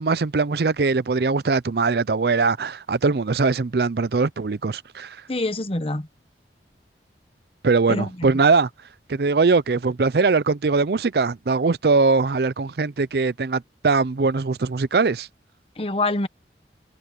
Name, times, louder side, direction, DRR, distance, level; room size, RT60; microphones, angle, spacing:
voice 1, 0.0-5.2 7.6-8.7 9.1-15.3, right 4 dB, 60° right, 0.5 m, -21 dB
voice 2, 5.3-6.1 7.9-8.4 15.8-16.3, left 2 dB, 30° left, 1.1 m, -25 dB
head